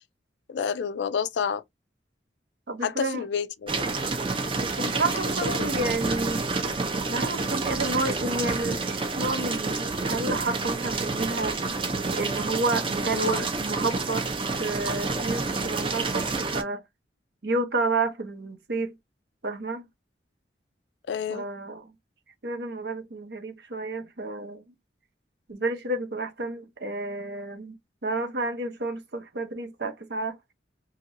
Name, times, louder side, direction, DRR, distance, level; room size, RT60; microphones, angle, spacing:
voice 1, 0.5-1.6 2.8-3.9 5.4-5.7 13.1-13.4 21.1-21.4, left 6 dB, 80° left, 0.4 m, -29 dB
voice 2, 2.7-3.2 4.5-6.4 7.1-11.6 12.1-14.2 14.6-16.8 17.4-18.9 19.4-19.8 21.3-21.9 22.4-24.6 25.5-30.4, right 2 dB, 65° right, 0.8 m, -30 dB
sound 1, 3.7-16.6, right 3 dB, 30° right, 0.6 m, -29 dB
2.9 x 2.8 x 2.6 m
head